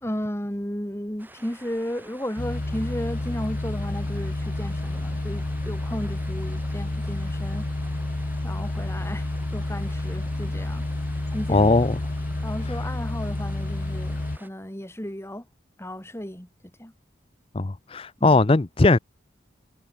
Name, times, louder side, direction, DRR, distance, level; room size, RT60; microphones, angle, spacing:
voice 1, 0.0-7.7 8.4-10.8 11.3-11.7 12.4-15.5 15.8-16.5 16.8-16.9 18.2-18.4, equal, 15° left, 2.1 m, -34 dB
sound 1, 1.2-14.5, right 2 dB, 10° right, 3.2 m, -49 dB
sound 2, 2.4-14.4, left 2 dB, 45° left, 0.9 m, -29 dB
voice 2, 11.5-12.0 17.5-19.0, left 3 dB, 30° left, 0.5 m, -19 dB
head